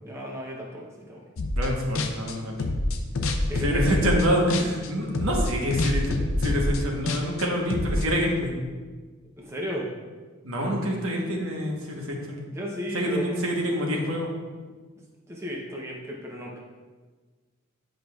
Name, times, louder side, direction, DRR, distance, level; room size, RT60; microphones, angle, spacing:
voice 1, 0.0-1.2 3.5-4.2 9.4-9.9 12.5-13.5 15.3-16.6, equal, 10° right, -3 dB, 0.7 m, -34 dB
sound 1, 1.4-1.7 2.0-4.9 5.1-8.0, left 2 dB, 65° left, 0.6 m, -26 dB
voice 2, 1.5-2.6 3.6-8.6 10.4-12.4 12.9-14.3, equal, 70° right, -1 dB, 1.1 m, -26 dB
9.2 x 5.1 x 2.4 m, 1.4 s
head